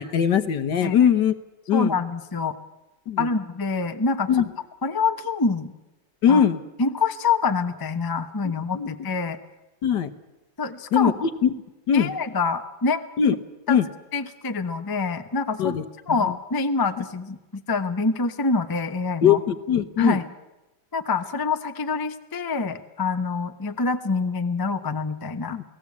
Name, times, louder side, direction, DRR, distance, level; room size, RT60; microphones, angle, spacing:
voice 1, 0.0-1.3 1.7-1.9 3.1-3.3 4.3-4.4 6.2-6.6 8.7-8.9 9.8-10.1 10.9-11.5 11.9-12.1 13.2-13.4 13.7-13.9 15.6-15.8 16.2-16.3 19.2-20.2 25.5-25.6, left 8 dB, 65° left, 8 dB, 1.7 m, -20 dB
voice 2, 1.7-2.6 3.2-4.3 4.8-5.7 6.3-6.4 6.8-9.4 10.6-11.1 11.9-13.0 13.7-13.8 14.1-15.8 16.1-19.4 20.0-20.2 20.9-25.6, left 4 dB, 15° left, 8 dB, 0.8 m, -26 dB
29.0 x 18.5 x 8.5 m, 1.0 s
omnidirectional pair, 2.1 m